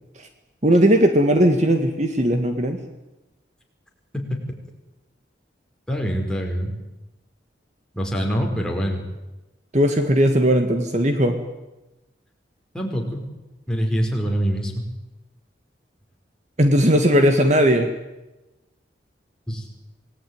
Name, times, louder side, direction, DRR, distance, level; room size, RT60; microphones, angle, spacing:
voice 1, 0.6-2.8 9.7-11.4 16.6-17.9, equal, 40° right, 6 dB, 1.9 m, -18 dB
voice 2, 5.9-6.7 7.9-9.0 12.7-13.2 13.7-14.9 19.5-19.7, equal, 5° left, 1 dB, 4.6 m, -24 dB
27.0 x 19.0 x 9.6 m, 1.0 s
head